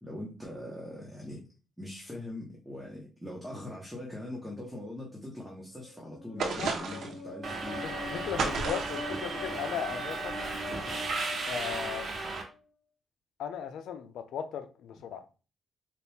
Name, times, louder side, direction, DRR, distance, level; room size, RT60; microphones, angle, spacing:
voice 1, 0.0-1.4 1.8-7.9 15.1-15.2, left 1 dB, 5° right, 1.2 m, -42 dB
sound 1, 5.7-12.6, left 3 dB, 55° left, 1.4 m, -43 dB
voice 2, 6.4-7.0 7.8-10.4 11.5-12.1 13.4-15.2, left 8 dB, 85° left, 0.5 m, -37 dB
sound 2, 6.4-7.2 8.4-9.1, right 4 dB, 70° right, 0.9 m, -32 dB
Subway metro underground, 7.4-12.4, right 3 dB, 50° right, 1.1 m, -35 dB
4.2 x 2.5 x 3.5 m
cardioid pair, 95°, 0 cm